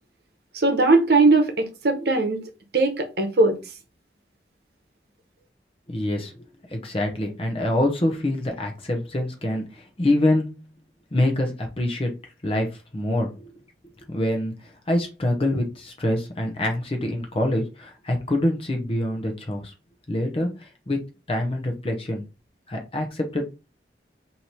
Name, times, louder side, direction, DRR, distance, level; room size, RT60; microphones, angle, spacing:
voice 1, 0.5-2.4 2.7-3.6, right 3 dB, 65° right, 0.9 m, -19 dB
voice 2, 5.9-6.4 6.7-10.6 11.1-12.1 12.4-13.5 14.1-14.5 14.9-19.7 20.1-21.0 21.3-22.2 22.7-23.4, left 1 dB, 30° left, 0.7 m, -25 dB
3.2 x 2.8 x 4.2 m
head